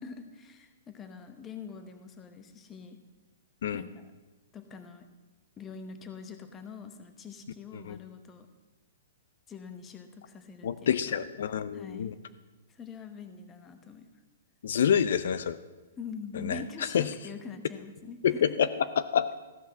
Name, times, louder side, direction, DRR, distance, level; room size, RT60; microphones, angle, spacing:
voice 1, 0.0-3.0 3.7-4.1 4.5-5.1 5.6-8.5 9.5-11.2 11.7-12.2 12.7-14.1 16.0-18.6, left 5 dB, 15° left, 8 dB, 1.0 m, -44 dB
voice 2, 10.6-12.1 14.6-15.6 16.3-17.1 18.2-18.7 19.1-19.3, left 8 dB, 65° left, 13 dB, 0.5 m, -27 dB
14.5 x 5.8 x 7.4 m, 1.2 s
hypercardioid pair, 160°, 0 cm